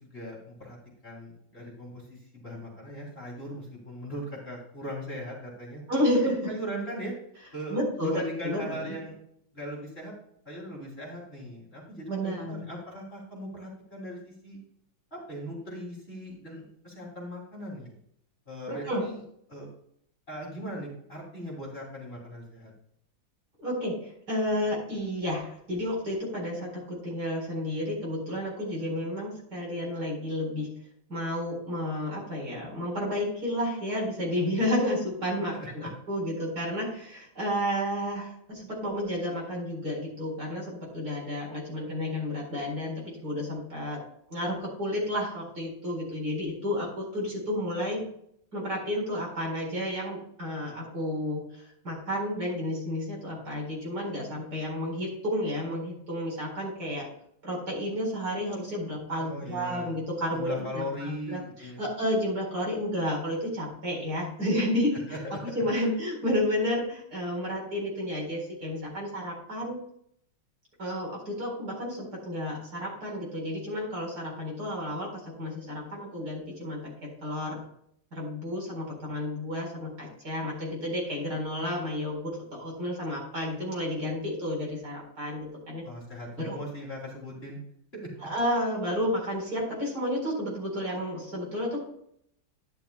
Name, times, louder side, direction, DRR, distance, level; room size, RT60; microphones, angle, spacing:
voice 1, 0.1-0.8 1.0-5.8 6.5-7.1 7.5-9.2 9.5-10.1 10.4-14.6 15.1-17.9 18.5-19.2 19.5-19.7 20.3-22.7 35.5-35.9 59.2-60.0 60.3-61.8 65.1-65.4 85.8-87.6 87.9-88.3, equal, 30° left, -3 dB, 3.2 m, -39 dB
voice 2, 5.9-6.5 7.7-9.0 12.1-12.6 18.7-19.0 23.6-30.7 31.1-44.0 44.3-48.0 48.5-51.4 51.8-57.1 57.4-69.8 70.8-77.6 78.1-85.8 86.4-86.6 88.2-91.8, left 1 dB, 50° right, -2 dB, 4.9 m, -31 dB
11.5 x 10.5 x 2.3 m, 0.69 s
omnidirectional pair, 2.2 m